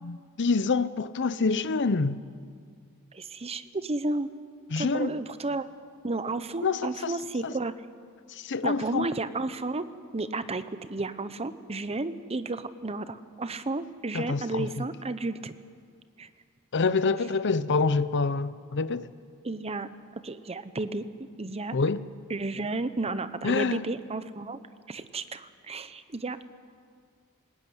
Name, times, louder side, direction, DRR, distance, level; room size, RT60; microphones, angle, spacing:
voice 1, 0.0-2.2 4.7-5.1 6.6-7.2 7.4-7.5 8.3-9.1 14.1-14.8 16.7-19.1 21.7-22.0 23.4-23.9, left 4 dB, 55° left, 0.7 m, -27 dB
voice 2, 3.1-4.3 4.8-5.7 6.0-7.7 8.6-9.9 10.1-15.5 16.2-16.3 19.4-19.9 20.2-21.1 21.4-21.7 22.3-24.6 24.9-26.5, right 2 dB, 30° right, 0.8 m, -32 dB
20.0 x 16.5 x 9.6 m
head